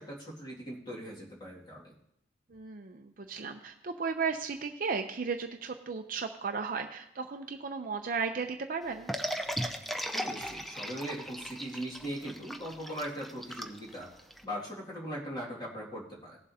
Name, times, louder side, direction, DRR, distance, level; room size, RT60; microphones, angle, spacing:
voice 1, 0.0-1.9 10.1-14.1 14.4-16.4, equal, 25° left, -4 dB, 2.2 m, -40 dB
voice 2, 2.5-9.1, right 5 dB, 50° right, 5 dB, 0.6 m, -35 dB
sound 1, 9.1-14.4, equal, ahead, 0.5 m, -37 dB
18.0 x 7.4 x 2.8 m, 0.74 s
head